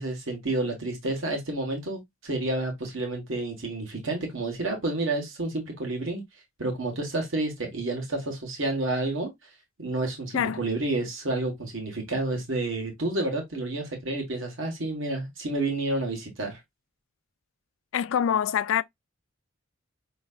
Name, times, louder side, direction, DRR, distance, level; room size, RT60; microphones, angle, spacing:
voice 1, 0.0-6.2 6.6-9.3 9.8-16.6, right 2 dB, 65° right, 1.4 m, -30 dB
voice 2, 17.9-18.8, left 8 dB, 70° left, 0.3 m, -25 dB
5.5 x 3.1 x 2.3 m
head